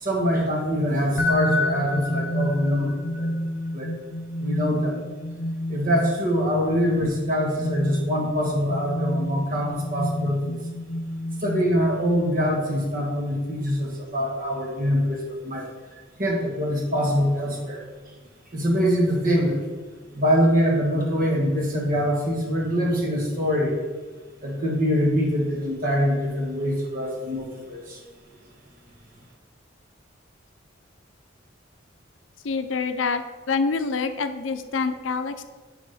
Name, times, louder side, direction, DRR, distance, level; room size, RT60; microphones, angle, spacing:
voice 1, 0.0-3.3 3.7-3.9 4.4-5.0 5.7-10.6 11.4-15.7 16.2-17.8 18.5-19.6 20.1-23.8 24.4-28.0, equal, 50° right, 0 dB, 1.5 m, -24 dB
sound 1, 1.2-12.9, left 1 dB, 55° left, 0.8 m, -29 dB
voice 2, 32.4-35.4, left 4 dB, 80° left, 10 dB, 0.5 m, -26 dB
6.1 x 4.9 x 5.6 m, 1.4 s
head